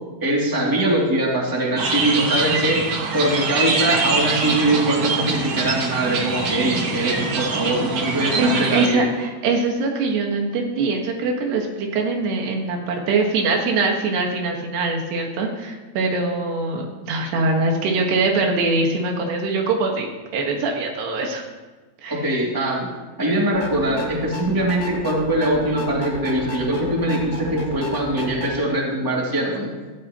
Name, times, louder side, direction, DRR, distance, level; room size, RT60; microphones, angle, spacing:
voice 1, 0.2-2.8 3.1-9.0 22.1-22.9 23.2-29.7, right 1 dB, 5° right, -3 dB, 1.8 m, -22 dB
sound 1, 1.8-8.9, right 4 dB, 60° right, 1.6 m, -24 dB
voice 2, 8.1-21.5 22.0-22.2, right 3 dB, 85° right, 2 dB, 3.7 m, -23 dB
sound 2, 23.5-28.5, left 2 dB, 60° left, 0.8 m, -34 dB
16.5 x 14.0 x 3.0 m, 1.3 s
omnidirectional pair, 4.6 m